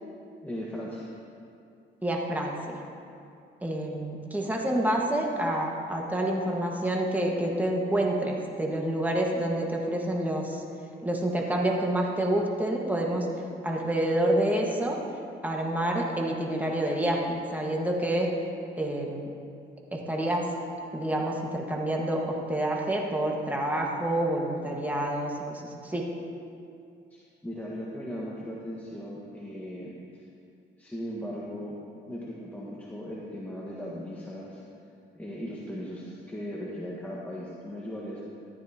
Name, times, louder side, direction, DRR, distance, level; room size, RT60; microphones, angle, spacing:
voice 1, 0.4-1.1 27.1-30.2 30.8-31.8 32.1-34.6 35.1-38.3, equal, 10° left, -6 dB, 1.6 m, -38 dB
voice 2, 2.0-2.6 3.6-10.6 11.0-13.3 13.6-15.0 15.4-18.3 18.8-19.3 19.9-20.4 20.9-26.0, right 1 dB, 10° right, -1 dB, 1.6 m, -28 dB
14.5 x 12.0 x 2.9 m, 2.5 s
cardioid pair, 90°, 20 cm